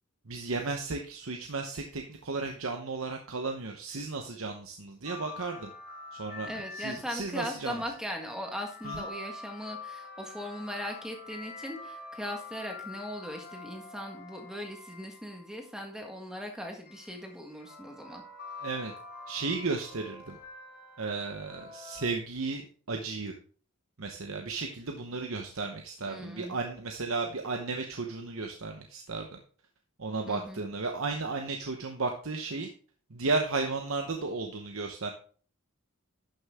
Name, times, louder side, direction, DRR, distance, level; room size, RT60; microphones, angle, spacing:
voice 1, 0.3-5.7 6.1-7.8 8.8-9.0 18.6-18.9 19.3-20.4 21.0-22.6 22.9-23.3 24.0-29.4 30.0-32.7 33.1-35.1, right 3 dB, 65° right, 3 dB, 1.0 m, -34 dB
sound 1, 5.0-15.9 16.8-22.1, left 3 dB, 45° left, 2.3 m, -46 dB
voice 2, 6.4-18.2 26.0-26.6 30.3-30.6, equal, 5° right, 2 dB, 1.6 m, -39 dB
11.5 x 6.5 x 3.6 m, 0.43 s
head